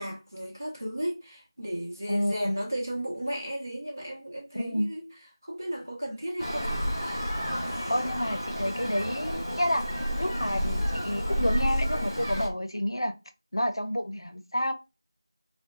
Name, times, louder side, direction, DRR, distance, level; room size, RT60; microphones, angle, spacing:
voice 1, 0.0-5.1 5.4-6.9, equal, 40° right, 0.8 m, -34 dB
voice 2, 2.1-2.6 4.5-4.9 7.9-13.2 13.5-14.7, equal, 90° left, 0.5 m, -29 dB
Traffic noise roadway noise, 6.4-12.5, equal, 10° left, 0.8 m, -30 dB
2.7 x 2.1 x 2.4 m
figure-of-eight pair, 180°, 2 cm